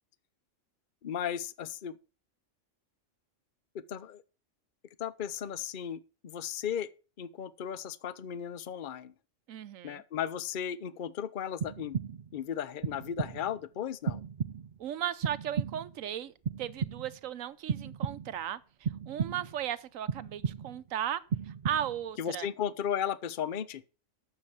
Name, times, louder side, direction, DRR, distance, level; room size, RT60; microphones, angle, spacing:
voice 1, 1.0-1.9 3.7-4.2 5.0-6.9 7.2-9.1 9.8-12.0 12.3-14.2 22.2-23.8, left 9 dB, 45° left, 0.8 m, -35 dB
voice 2, 9.5-10.0 14.8-22.5, right 10 dB, 85° right, 1.2 m, -36 dB
sound 1, 11.6-12.4 12.8-13.6 14.1-14.9 15.2-16.0 16.4-17.3 17.7-18.5 18.8-19.6 20.1-20.9 21.3-22.1, right 7 dB, 50° right, 0.6 m, -35 dB
9.2 x 6.9 x 7.1 m
omnidirectional pair, 1.4 m